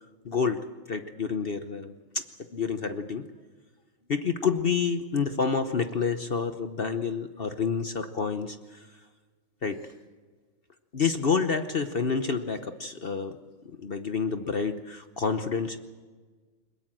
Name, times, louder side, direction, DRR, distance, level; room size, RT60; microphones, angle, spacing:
voice 1, 0.2-1.9 2.5-3.2 4.1-8.6 9.6-9.8 10.9-13.4 13.6-15.8, left 5 dB, 55° left, 8 dB, 0.6 m, -28 dB
22.0 x 21.0 x 7.6 m, 1.4 s
omnidirectional pair, 2.3 m